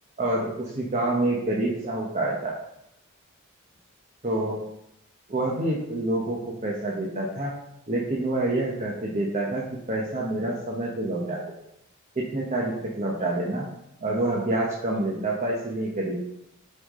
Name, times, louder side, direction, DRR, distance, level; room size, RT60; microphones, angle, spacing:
voice 1, 0.2-2.5 4.2-4.6 5.3-7.5 7.9-11.4 12.1-13.7 14.0-16.1, right 1 dB, 35° right, -3 dB, 1.0 m, -27 dB
6.6 x 5.6 x 3.8 m, 0.82 s
head